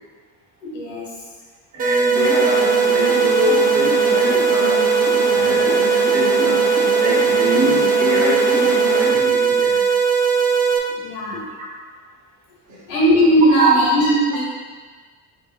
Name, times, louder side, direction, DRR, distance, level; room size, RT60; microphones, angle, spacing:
voice 1, 0.6-1.1 10.9-11.5 12.9-14.4, equal, 70° left, -5 dB, 1.5 m, -18 dB
voice 2, 1.7-4.8 5.2-6.6 7.0-9.8 11.6-11.7 12.7-12.8 13.6-13.7, right 1 dB, 40° right, -3 dB, 0.9 m, -24 dB
sound 1, 1.8-10.8, right 6 dB, 20° right, 0.4 m, -18 dB
sound 2, 2.1-9.1, left 3 dB, 50° left, 0.9 m, -26 dB
4.4 x 2.7 x 2.4 m, 1.5 s
hypercardioid pair, 60°, 47 cm